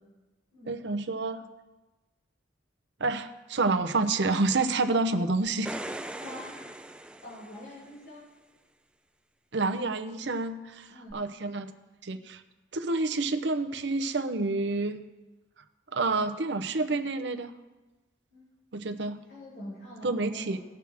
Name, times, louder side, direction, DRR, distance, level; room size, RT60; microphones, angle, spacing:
voice 1, 0.7-1.4 3.0-5.8 9.5-11.7 12.0-12.4 12.7-15.0 15.9-17.5 18.7-19.2 20.0-20.6, right 3 dB, 65° right, 8 dB, 0.7 m, -28 dB
sound 1, 5.5-8.0 11.1-11.2, right 1 dB, 5° right, 0.3 m, -40 dB
voice 2, 6.2-6.6 7.2-8.2 10.9-11.1 18.3-18.5 19.3-20.6, left 1 dB, 80° left, -9 dB, 4.2 m, -44 dB
19.0 x 6.4 x 3.5 m, 1.1 s
head